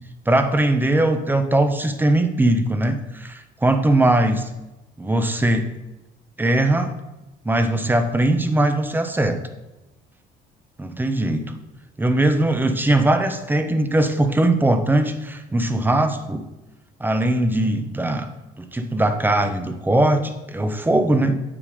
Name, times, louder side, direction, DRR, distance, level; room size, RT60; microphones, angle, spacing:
voice 1, 0.3-4.5 5.0-5.7 6.4-6.9 7.4-9.4 10.8-11.5 12.0-16.5 17.0-18.3 18.6-21.4, right 1 dB, 10° right, 8 dB, 0.8 m, -20 dB
8.6 x 5.2 x 5.0 m, 1.0 s
cardioid pair, 110°, 17 cm